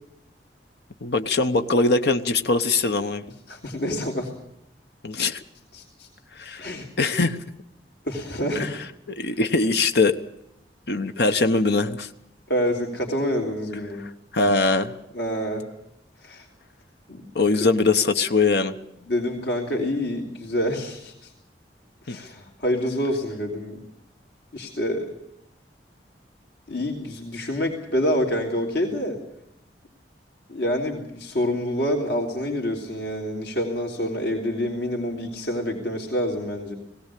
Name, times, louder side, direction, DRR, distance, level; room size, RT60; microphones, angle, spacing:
voice 1, 1.0-3.2 5.0-5.4 6.3-6.6 7.0-7.4 8.6-8.7 9.1-10.2 10.9-12.1 14.0-14.9 17.3-18.8 22.1-22.2, left 3 dB, 65° left, 8 dB, 1.0 m, -22 dB
voice 2, 3.5-4.3 5.7-6.1 6.6-6.9 8.0-8.7 9.2-9.3 12.5-14.0 15.1-15.6 16.2-16.5 17.1-17.3 19.1-21.3 22.0-23.8 24.5-25.1 26.7-29.2 30.5-36.7, equal, 85° left, 0 dB, 3.4 m, -27 dB
20.0 x 17.0 x 8.4 m, 0.80 s
head